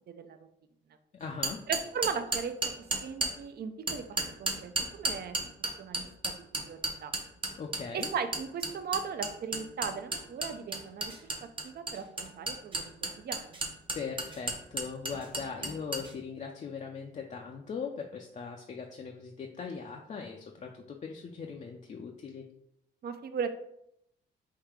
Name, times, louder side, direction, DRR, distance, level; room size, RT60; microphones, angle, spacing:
voice 1, 0.1-0.4 1.7-2.5 3.0-5.4 5.8-6.3 6.6-7.1 7.9-11.2 11.6-13.6 23.0-23.6, right 6 dB, 55° right, 9 dB, 0.5 m, -37 dB
voice 2, 1.1-1.6 7.6-8.1 13.9-22.5, left 5 dB, 35° left, 1 dB, 0.5 m, -40 dB
sound 1, 1.4-3.3 3.9-16.1, right 2 dB, 25° right, 0.8 m, -32 dB
3.6 x 2.8 x 4.7 m, 0.79 s
cardioid pair, 90°, 20 cm